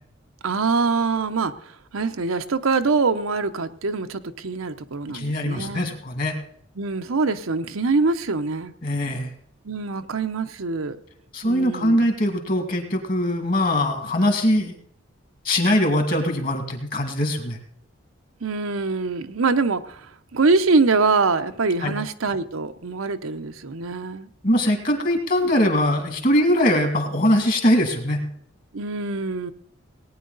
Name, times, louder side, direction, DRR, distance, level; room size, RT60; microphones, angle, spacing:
voice 1, 0.4-5.9 6.8-8.7 9.6-11.0 11.4-12.1 18.4-24.3 28.7-29.5, right 4 dB, 85° right, 8 dB, 0.8 m, -24 dB
voice 2, 5.1-6.4 8.8-9.3 11.3-14.7 15.4-17.6 21.8-22.0 24.4-28.2, left 1 dB, 45° left, 5 dB, 2.2 m, -21 dB
18.5 x 9.5 x 4.0 m, 0.66 s
head